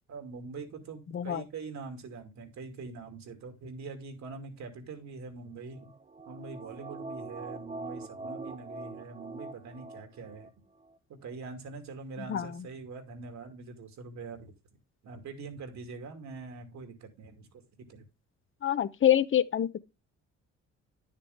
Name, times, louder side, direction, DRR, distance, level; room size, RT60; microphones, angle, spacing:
voice 1, 0.1-5.9 6.3-10.5 11.1-14.5 15.0-17.6 17.9-18.0, right 4 dB, 65° right, 2.5 m, -43 dB
voice 2, 1.1-1.4 12.3-12.7 18.6-19.8, left 10 dB, 40° left, 0.8 m, -26 dB
sound 1, 5.7-10.5 10.8-10.9, right 3 dB, 20° right, 0.8 m, -43 dB
10.5 x 6.7 x 3.5 m
cardioid pair, 90°, 30 cm